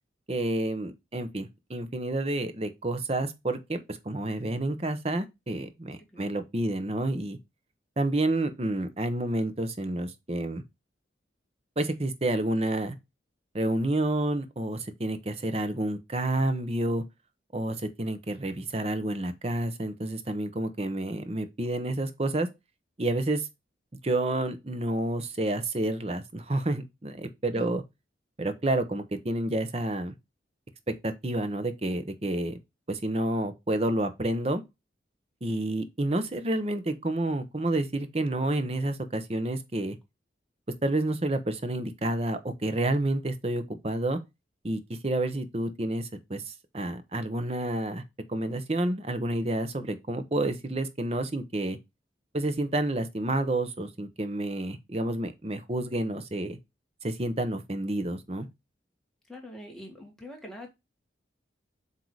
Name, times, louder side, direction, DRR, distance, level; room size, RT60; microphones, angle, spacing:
voice 1, 0.3-7.4 8.0-10.6 11.8-12.9 13.5-17.0 17.5-22.5 23.0-23.5 24.0-27.8 28.4-30.1 31.0-32.6 32.9-34.6 35.4-40.0 40.8-44.2 44.6-48.0 48.3-51.8 52.3-56.6 57.0-58.5, right 1 dB, 35° right, 0.8 m, -29 dB
voice 2, 59.3-60.7, left 1 dB, 5° left, 1.7 m, -44 dB
7.9 x 2.8 x 4.7 m
head